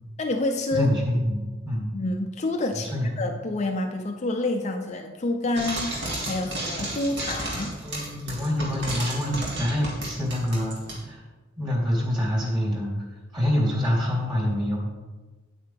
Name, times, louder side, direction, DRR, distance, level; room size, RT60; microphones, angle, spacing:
voice 1, 0.2-0.9 1.9-7.7, left 2 dB, 35° left, 3 dB, 0.6 m, -28 dB
voice 2, 0.7-1.9 2.9-3.1 7.8-11.2 11.6-12.9 13.3-14.8, left 1 dB, 25° right, -4 dB, 3.2 m, -26 dB
Frying (food), 5.6-11.0, right 1 dB, 60° right, 2.6 m, -32 dB
9.3 x 8.9 x 3.5 m, 1.2 s
head